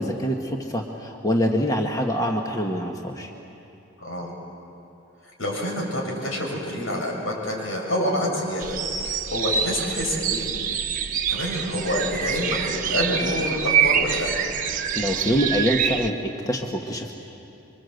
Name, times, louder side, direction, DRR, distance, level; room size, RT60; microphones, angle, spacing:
voice 1, 0.0-3.3 14.9-17.1, equal, 15° left, 1 dB, 1.4 m, -25 dB
voice 2, 4.0-4.3 5.4-8.8 9.0-10.5 11.3-14.3, left 1 dB, 80° left, -1 dB, 6.8 m, -27 dB
sound 1, 8.6-16.1, right 7 dB, 40° right, 1.1 m, -25 dB
27.0 x 24.0 x 8.0 m, 2.8 s
head